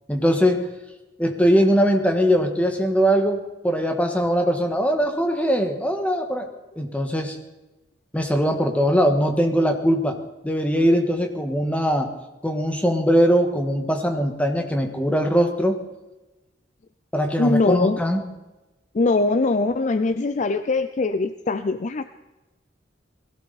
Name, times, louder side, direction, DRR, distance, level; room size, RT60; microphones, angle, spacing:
voice 1, 0.1-0.7 1.2-6.5 6.7-7.4 8.1-10.2 10.4-12.1 12.4-15.8 17.1-18.2, equal, 10° left, 4 dB, 1.5 m, -21 dB
voice 2, 17.4-18.0 18.9-22.0, left 3 dB, 40° left, 11 dB, 0.5 m, -22 dB
21.0 x 16.0 x 4.2 m, 1.1 s
head